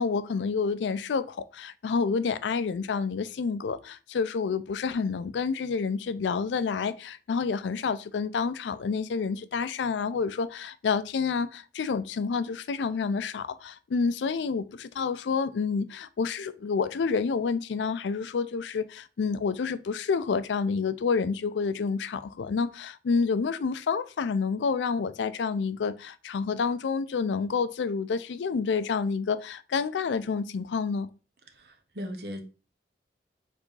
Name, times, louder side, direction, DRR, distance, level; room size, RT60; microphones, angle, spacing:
voice 1, 0.0-31.1, left 5 dB, 85° left, 0.4 m, -29 dB
voice 2, 31.6-32.4, equal, 60° right, 0.9 m, -37 dB
4.3 x 3.4 x 3.2 m
head